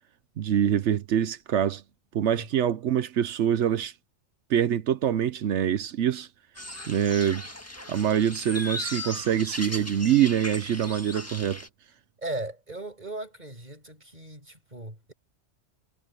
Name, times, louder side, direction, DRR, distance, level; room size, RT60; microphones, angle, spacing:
voice 1, 0.4-1.8 2.1-3.9 4.5-6.3 6.9-7.4 7.9-11.6, right 9 dB, 80° right, 1.0 m, -25 dB
sound 1, 6.5-11.7, left 1 dB, 15° left, 1.7 m, -37 dB
voice 2, 12.2-15.1, right 2 dB, 40° right, 7.7 m, -37 dB
omnidirectional pair, 1.2 m